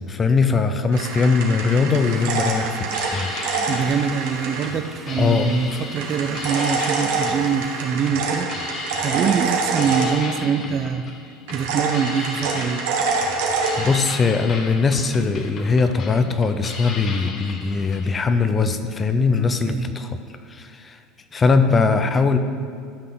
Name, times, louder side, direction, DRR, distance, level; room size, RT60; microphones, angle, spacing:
voice 1, 0.0-2.8 3.1-3.3 3.8-4.1 5.2-5.5 13.8-20.2 20.5-21.0 21.3-22.4, left 4 dB, 25° left, 8 dB, 0.8 m, -20 dB
sound 1, 0.9-4.7 6.0-10.6 11.5-14.0, right 4 dB, 75° right, 1.5 m, -26 dB
Domestic sounds home sounds, 1.9-8.9, right 1 dB, 15° right, 1.6 m, -43 dB
sound 2, 2.8-18.1, left 4 dB, 45° left, 1.3 m, -36 dB
voice 2, 3.7-8.5 9.0-11.0 11.5-12.8 19.7-19.9, right 7 dB, 45° right, 9 dB, 0.6 m, -24 dB
12.5 x 5.7 x 4.0 m, 2.3 s
supercardioid pair, 95°, 0 cm